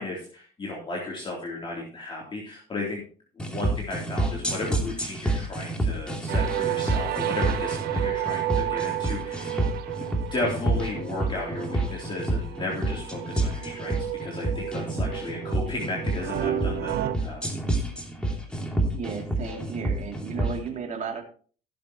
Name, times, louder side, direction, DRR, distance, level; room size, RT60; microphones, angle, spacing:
voice 1, 0.0-3.0 3.4-9.6 10.3-17.5, left 2 dB, 30° left, -3 dB, 3.6 m, -34 dB
sound 1, 3.4-20.6, right 2 dB, 5° left, 2.7 m, -28 dB
sound 2, 6.3-17.2, right 12 dB, 70° right, 1.0 m, -32 dB
voice 2, 18.9-21.2, right 5 dB, 45° right, 2 dB, 3.1 m, -34 dB
17.5 x 7.4 x 3.1 m, 0.42 s
cardioid pair, 110°, 17 cm